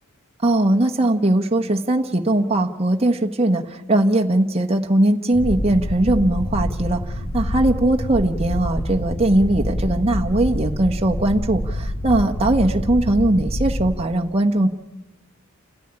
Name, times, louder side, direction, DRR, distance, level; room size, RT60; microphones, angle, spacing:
voice 1, 0.4-14.7, right 1 dB, 25° right, 3 dB, 1.2 m, -20 dB
sound 1, 5.3-14.0, equal, 75° left, 2.5 m, -26 dB
29.5 x 13.5 x 9.9 m, 1.0 s
head